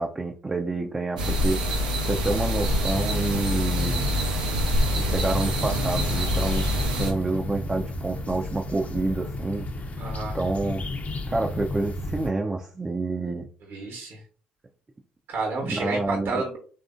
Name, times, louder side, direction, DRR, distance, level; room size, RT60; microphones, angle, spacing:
voice 1, 0.0-4.1 5.0-9.8 10.3-10.8 11.3-13.5 15.6-16.4, right 2 dB, 20° right, 0.4 m, -28 dB
sound 1, 1.2-7.1, equal, 90° right, 0.6 m, -26 dB
sound 2, 2.7-12.3, left 1 dB, 35° left, 0.6 m, -32 dB
voice 2, 10.0-10.4 13.6-14.2 15.3-16.6, right 3 dB, 60° right, 1.0 m, -30 dB
3.3 x 2.5 x 2.5 m
hypercardioid pair, 55°, 4 cm